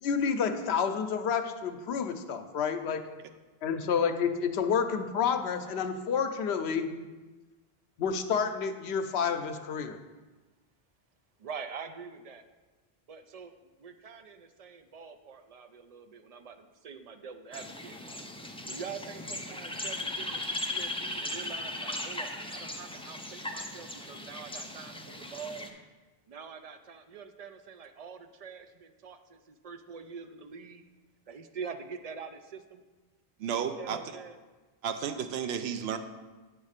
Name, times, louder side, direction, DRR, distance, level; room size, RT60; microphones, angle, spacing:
voice 1, 0.0-3.0 3.6-6.9 8.0-10.0, left 6 dB, 90° left, 8 dB, 0.9 m, -29 dB
voice 2, 11.4-12.4 13.1-13.5 13.8-18.0 18.7-25.7 26.3-30.8 31.3-32.8 33.5-34.4, right 6 dB, 55° right, 8 dB, 0.4 m, -45 dB
sound 1, 17.5-25.7, left 1 dB, 10° left, 0.3 m, -38 dB
voice 3, 33.4-34.0 34.8-36.0, right 7 dB, 80° right, 8 dB, 0.8 m, -32 dB
9.2 x 3.2 x 6.5 m, 1.2 s
omnidirectional pair, 1.0 m